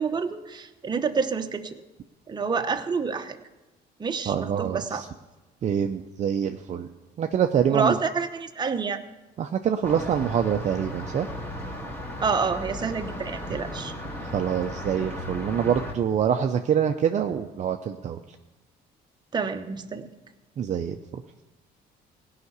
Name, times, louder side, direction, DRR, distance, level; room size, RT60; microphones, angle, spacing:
voice 1, 0.0-1.8 2.3-3.4 4.0-5.0 7.7-9.1 12.2-13.9 19.3-20.0, right 5 dB, 25° right, 6 dB, 1.0 m, -28 dB
voice 2, 4.3-5.1 5.6-6.9 7.2-8.0 9.4-11.3 14.3-18.2 20.6-21.0, right 8 dB, 45° right, 5 dB, 0.6 m, -25 dB
sound 1, 9.8-15.9, equal, 15° left, 2.0 m, -35 dB
17.0 x 5.8 x 8.1 m, 1.1 s
cardioid pair, 110°, 17 cm